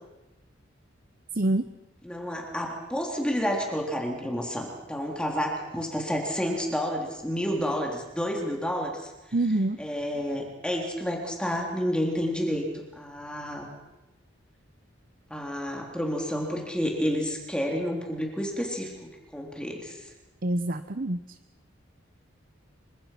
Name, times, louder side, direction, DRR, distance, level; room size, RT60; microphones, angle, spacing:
voice 1, 2.0-9.1 9.8-13.7 15.3-20.0, equal, 5° left, 0 dB, 3.6 m, -30 dB
voice 2, 9.3-9.8 20.4-21.2, right 2 dB, 45° right, 11 dB, 0.9 m, -26 dB
27.5 x 25.0 x 5.9 m, 1.0 s
head